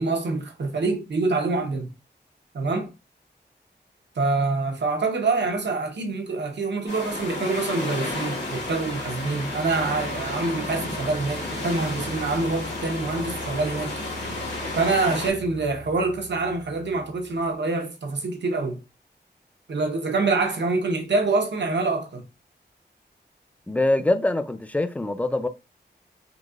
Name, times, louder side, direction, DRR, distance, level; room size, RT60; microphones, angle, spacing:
voice 1, 0.0-1.9 2.5-2.9 4.2-14.0 14.7-18.8 19.7-22.2, right 3 dB, 75° right, 0.8 m, -25 dB
sound 1, 6.9-15.3, left 2 dB, 70° left, 1.6 m, -32 dB
sound 2, 7.6-17.5, equal, 40° right, 0.6 m, -42 dB
voice 2, 23.7-25.5, left 2 dB, 10° left, 0.4 m, -24 dB
3.9 x 2.8 x 2.4 m
wide cardioid pair, 95°, 18 cm